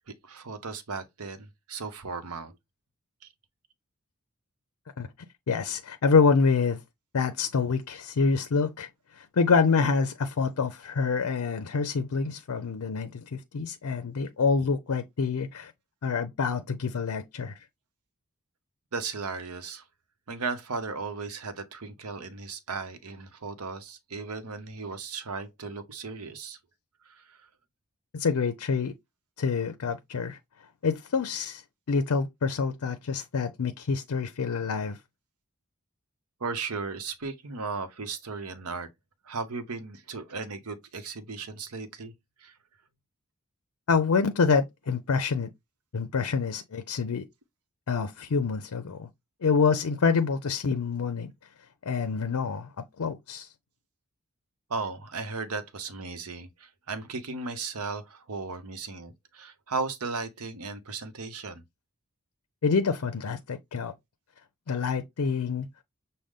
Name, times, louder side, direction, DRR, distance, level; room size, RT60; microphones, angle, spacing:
voice 1, 0.2-2.5 18.9-19.8 20.3-26.6 27.0-27.5 36.4-38.9 39.2-42.1 42.4-42.6 54.7-61.6, right 4 dB, 80° right, 0.9 m, -36 dB
voice 2, 5.5-6.8 7.1-8.9 9.2-15.7 16.0-17.5 28.1-28.9 29.4-30.4 30.8-31.6 31.9-35.0 43.9-45.5 45.9-47.2 47.9-49.1 49.4-51.3 51.8-53.5 62.6-63.9 64.7-65.7, left 5 dB, 70° left, 0.5 m, -26 dB
6.4 x 2.2 x 3.6 m
head